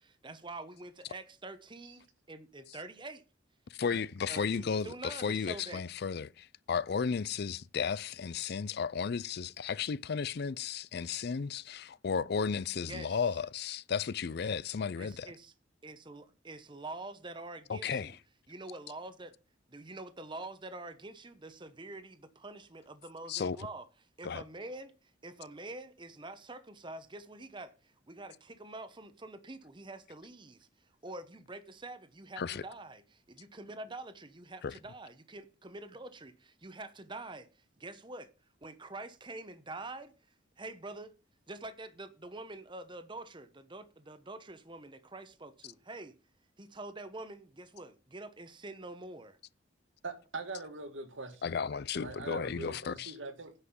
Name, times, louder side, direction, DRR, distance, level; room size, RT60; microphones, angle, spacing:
voice 1, 0.0-3.2 4.3-5.8 12.9-13.2 15.0-15.5 15.8-18.2 18.5-19.3 19.7-23.8 24.2-30.7 31.0-37.5 37.8-38.3 38.6-40.1 40.6-41.1 41.5-46.1 46.6-49.4, right 2 dB, 25° right, 1.0 m, -46 dB
voice 2, 3.7-15.3 17.7-18.2 23.3-23.6 24.2-24.4 32.4-32.6 34.6-34.8 51.4-53.1, left 6 dB, 55° left, 0.4 m, -34 dB
voice 3, 50.0-51.5 52.0-53.5, right 3 dB, 85° right, 1.9 m, -43 dB
9.8 x 5.8 x 7.1 m
head